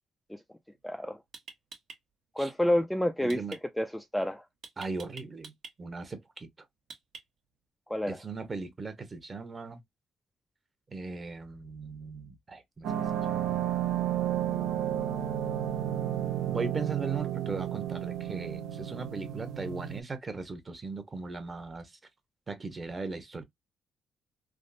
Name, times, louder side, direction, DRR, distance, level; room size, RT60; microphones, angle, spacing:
sound 1, 0.7-0.9 1.3-2.0 3.3-3.6 4.6-5.7 6.9-7.5, right 5 dB, 65° right, 0.9 m, -46 dB
voice 1, 0.8-1.2 2.4-3.4 3.8-4.4 7.9-8.2, left 1 dB, 5° left, 0.3 m, -28 dB
voice 2, 3.2-3.6 4.8-5.5 5.8-6.5 8.1-9.8 10.9-12.9 13.3-13.7 16.4-21.9 22.5-23.4, right 4 dB, 30° right, 0.8 m, -38 dB
sound 2, 12.8-20.0, right 11 dB, 85° right, 0.4 m, -32 dB
3.5 x 2.0 x 2.5 m
cardioid pair, 90°, 0 cm